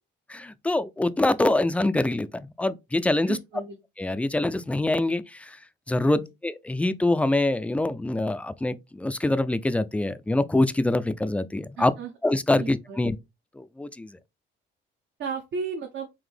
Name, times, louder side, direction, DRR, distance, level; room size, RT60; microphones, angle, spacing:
voice 1, 0.3-3.4 4.0-5.6 5.9-11.9 12.2-13.1 13.6-14.1, left 2 dB, 5° left, 0.3 m, -25 dB
voice 2, 3.3-3.8 6.2-6.3 11.8-12.1 12.6-13.0 15.2-16.1, right 5 dB, 65° right, 0.8 m, -34 dB
3.9 x 2.6 x 3.3 m
cardioid pair, 90°, 20 cm